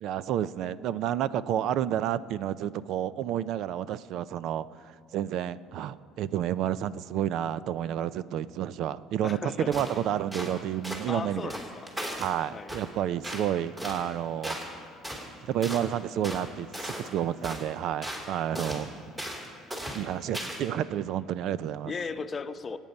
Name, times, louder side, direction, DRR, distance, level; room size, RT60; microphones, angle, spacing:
voice 1, 0.0-4.6 5.1-9.4 9.7-11.5 12.2-14.6 15.4-18.9 19.9-21.9, right 10 dB, 65° right, 16 dB, 0.5 m, -30 dB
voice 2, 9.2-9.8 11.1-11.9 12.5-12.7 18.5-18.7 21.8-22.8, left 5 dB, 30° left, 8 dB, 0.8 m, -36 dB
sound 1, 9.7-10.0 10.3-10.5 10.8-11.1 11.5-12.3 12.7-12.9 13.2-13.5 13.8-14.0 14.4-14.7 15.0-15.3 15.6-15.9 16.2-16.5 16.7-17.1 17.4-17.7 18.0-18.3 18.5-18.8 19.2-19.5 19.7-20.0 20.3-20.7, equal, 15° right, 3.3 m, -36 dB
26.5 x 9.1 x 5.4 m, 2.3 s
cardioid pair, 100°, 0 cm